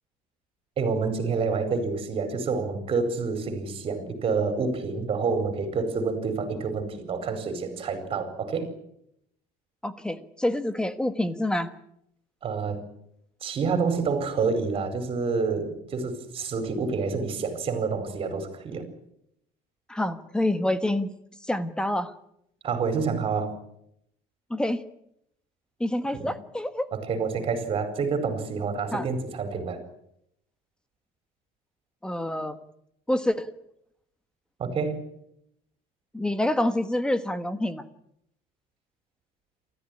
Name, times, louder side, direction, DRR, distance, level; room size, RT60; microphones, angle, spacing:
voice 1, 0.8-8.7 12.4-12.8 13.4-18.8 22.6-23.5 26.1-26.3 26.9-29.8 34.6-35.0, right 4 dB, 35° right, 8 dB, 4.7 m, -28 dB
voice 2, 9.8-11.7 19.9-21.1 21.4-22.1 24.5-24.8 25.8-26.9 28.9-29.1 32.0-32.6 33.1-33.5 36.1-37.9, left 1 dB, 5° left, 11 dB, 1.3 m, -27 dB
28.5 x 14.0 x 10.0 m, 0.77 s
cardioid pair, 170°, 16 cm